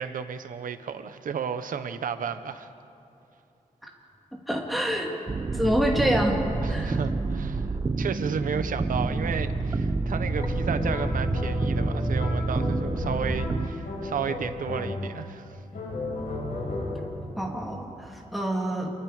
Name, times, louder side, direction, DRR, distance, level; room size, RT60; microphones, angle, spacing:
voice 1, 0.0-2.7 6.6-15.6, right 7 dB, 80° right, 10 dB, 1.1 m, -33 dB
voice 2, 4.5-5.1 5.5-6.4 6.7-6.9 17.4-18.9, equal, ahead, -2 dB, 2.8 m, -26 dB
sound 1, 5.3-13.7, right 3 dB, 25° right, 0.9 m, -28 dB
sound 2, 10.3-15.3 15.7-17.2, left 2 dB, 80° left, 6.9 m, -34 dB
28.5 x 22.5 x 5.1 m, 2.8 s
wide cardioid pair, 135°, 14 cm